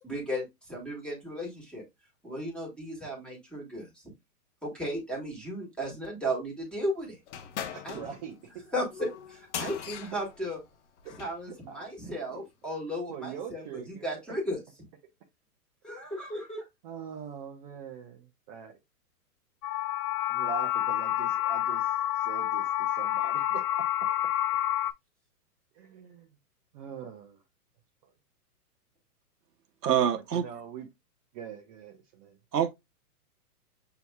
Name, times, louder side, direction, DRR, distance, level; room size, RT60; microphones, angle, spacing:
voice 1, 0.0-1.8 2.2-4.0 4.6-7.2 7.8-8.0 8.7-10.6 11.2-13.6 14.0-14.6 15.8-16.6, equal, ahead, 1.5 m, -35 dB
sound 1, 7.3-11.4, left 8 dB, 50° left, 0.9 m, -41 dB
voice 2, 7.7-8.6 11.0-11.1 11.5-12.5 13.1-14.4 16.8-18.8 20.3-23.6 25.7-26.3 26.7-27.4 28.0-28.1 30.1-30.9 31.3-32.4, right 7 dB, 30° right, 0.7 m, -43 dB
sound 2, 19.6-24.9, left 12 dB, 70° left, 0.5 m, -28 dB
voice 3, 29.8-30.4 32.5-32.7, right 9 dB, 85° right, 1.0 m, -25 dB
6.9 x 2.9 x 2.2 m
hypercardioid pair, 135°, 47 cm